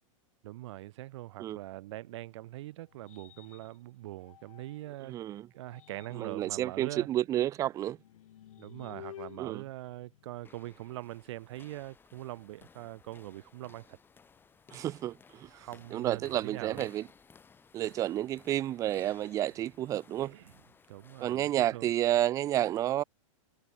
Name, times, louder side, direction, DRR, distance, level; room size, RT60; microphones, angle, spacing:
voice 1, 0.4-5.2 5.5-7.1 8.6-14.0 15.5-16.9 20.3-20.5 20.9-21.9, right 16 dB, 55° right, 1.2 m, -43 dB
sound 1, 1.9-5.0 5.5-10.7, left 12 dB, 75° left, 2.6 m, -54 dB
voice 2, 5.0-5.5 6.1-8.0 9.4-9.6 14.7-15.5 15.9-17.1 17.7-20.3 21.2-23.0, right 12 dB, 20° right, 0.4 m, -30 dB
sound 2, 10.2-22.2, left 5 dB, 10° left, 2.1 m, -59 dB
hypercardioid pair, 145°, 17 cm